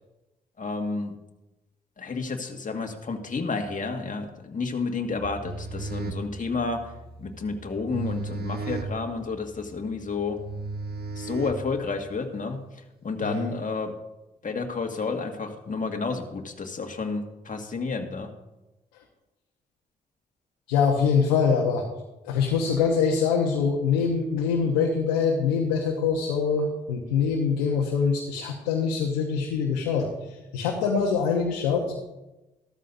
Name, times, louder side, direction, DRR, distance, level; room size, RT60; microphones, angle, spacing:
voice 1, 0.6-1.1 2.0-6.9 7.2-10.4 11.2-12.6 13.0-13.9 14.4-18.3, left 4 dB, 40° left, 3 dB, 2.0 m, -30 dB
sound 1, 5.2-12.1, right 3 dB, 55° right, 1.1 m, -35 dB
voice 2, 20.7-21.8 22.2-31.9, left 6 dB, 85° left, 0 dB, 1.1 m, -24 dB
14.0 x 13.5 x 2.7 m, 1.0 s
hypercardioid pair, 40°, 20 cm